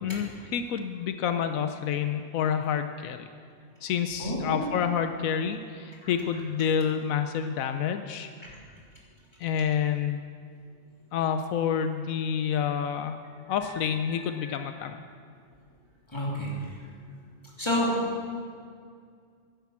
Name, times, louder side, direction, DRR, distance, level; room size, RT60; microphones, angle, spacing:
voice 1, 0.0-3.2 3.8-8.3 9.4-10.2 11.1-13.2 13.5-15.0, left 8 dB, 85° left, 8 dB, 1.1 m, -28 dB
voice 2, 4.2-4.6 6.0-6.1 14.4-14.5 16.1-16.5 17.6-18.0, left 1 dB, 20° left, -5 dB, 3.1 m, -28 dB
11.0 x 10.5 x 7.3 m, 2.2 s
omnidirectional pair, 1.4 m